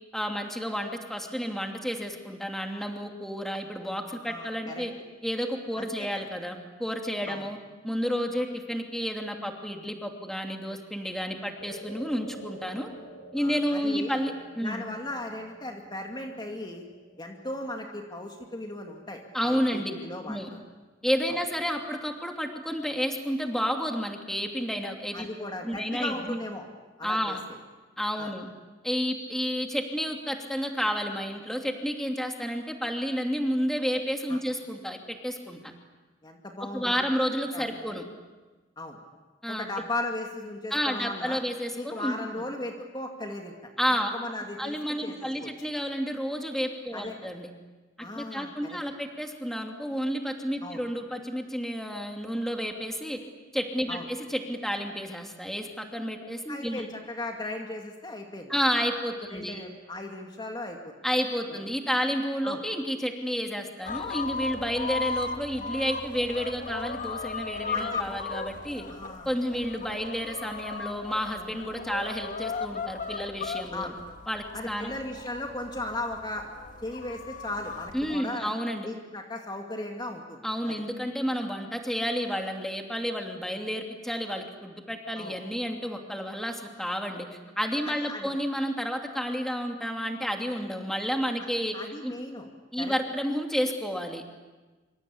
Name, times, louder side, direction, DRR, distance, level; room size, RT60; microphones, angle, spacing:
voice 1, 0.1-4.9 5.2-7.6 7.8-12.9 13.3-14.8 19.3-19.9 20.3-20.5 21.0-25.3 25.6-26.4 27.0-27.4 28.0-28.5 28.8-35.7 36.7-38.1 39.4-39.7 40.7-42.1 43.8-44.1 44.6-47.5 48.1-53.2 53.5-56.9 58.5-59.6 61.0-68.8 69.2-73.9 74.3-74.9 77.9-78.9 80.4-87.3 87.6-92.1 92.7-94.2, equal, ahead, 3 dB, 2.8 m, -31 dB
voice 2, 4.3-4.8 5.8-6.1 7.3-7.5 13.4-14.2 14.6-16.8 17.2-20.6 25.1-26.7 27.0-27.4 28.2-28.3 34.3-34.4 36.2-36.9 37.5-37.7 38.8-39.0 39.5-41.4 41.8-43.7 44.1-45.1 45.4-45.5 46.9-47.1 48.0-48.8 50.6-50.8 53.9-54.1 56.5-58.6 59.3-60.9 61.5-61.6 62.4-62.6 67.7-68.0 68.9-69.3 73.7-74.0 74.5-76.5 76.8-78.5 78.8-80.8 85.2-85.4 87.8-88.3 91.7-92.5 92.8-92.9, left 1 dB, 25° left, 2 dB, 2.3 m, -37 dB
sound 1, 11.6-20.1, right 1 dB, 80° left, 5.8 m, -49 dB
sound 2, 63.9-78.2, left 4 dB, 45° left, 1.4 m, -36 dB
26.0 x 26.0 x 8.7 m, 1.2 s
head